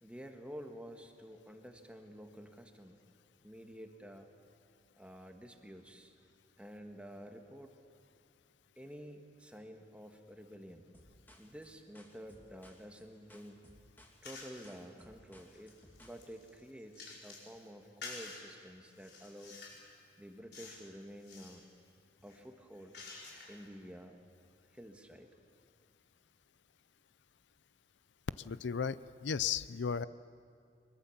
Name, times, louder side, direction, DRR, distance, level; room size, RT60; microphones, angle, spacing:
voice 1, 0.0-3.0 3.4-4.3 5.0-6.1 6.6-7.7 8.8-10.9 11.4-13.6 14.2-19.6 20.2-21.7 22.2-23.0 23.5-24.2 24.7-25.3, equal, 5° right, 4 dB, 1.6 m, -50 dB
sound 1, 10.9-16.2, left 1 dB, 10° left, 2.5 m, -61 dB
sound 2, 14.2-14.7 15.3-17.5 18.0-18.4 18.9-19.9 20.5-20.9 21.2-21.6 22.2-23.7, left 4 dB, 65° left, 5.0 m, -50 dB
voice 2, 28.4-30.0, left 6 dB, 85° left, 16 dB, 0.5 m, -35 dB
23.5 x 22.0 x 7.3 m, 2.4 s
head